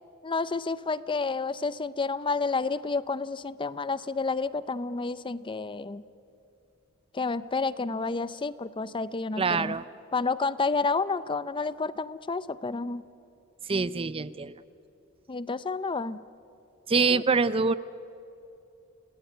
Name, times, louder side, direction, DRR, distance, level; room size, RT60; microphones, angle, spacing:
voice 1, 0.2-6.0 7.1-9.8 10.1-13.0 15.3-16.2 17.1-17.2, left 4 dB, 25° left, 15 dB, 0.5 m, -30 dB
voice 2, 9.4-9.8 13.7-14.5 16.9-17.7, right 4 dB, 25° right, 15 dB, 0.5 m, -25 dB
30.0 x 17.5 x 9.1 m, 2.7 s
head